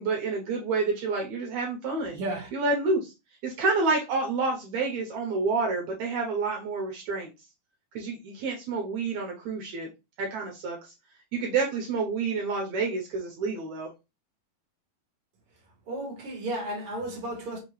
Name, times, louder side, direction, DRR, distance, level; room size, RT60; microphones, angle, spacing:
voice 1, 0.0-2.2 2.5-3.1 3.4-7.3 8.0-9.9 10.2-10.9 11.3-13.9, right 3 dB, 70° right, 1.9 m, -28 dB
voice 2, 2.1-2.5 15.9-17.6, right 1 dB, 55° right, 1.7 m, -33 dB
5.6 x 2.8 x 3.1 m
omnidirectional pair, 3.9 m